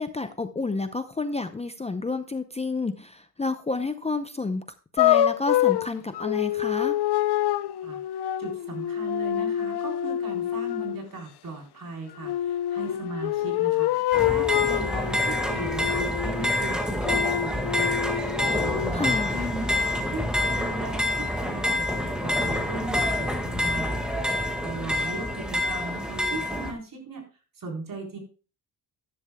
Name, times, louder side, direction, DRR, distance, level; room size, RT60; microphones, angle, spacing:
voice 1, 0.0-4.6 4.9-7.0 18.9-19.4, left 3 dB, 15° left, 9 dB, 0.5 m, -30 dB
sound 1, 5.0-11.0 12.2-16.5 17.0-18.9, left 12 dB, 75° left, 0.6 m, -26 dB
voice 2, 8.4-27.2 27.6-28.2, right 3 dB, 55° right, 1 dB, 3.9 m, -38 dB
sound 2, 14.1-26.7, left 1 dB, ahead, 1.7 m, -27 dB
13.0 x 11.0 x 2.2 m, 0.35 s
cardioid pair, 125°, 40 cm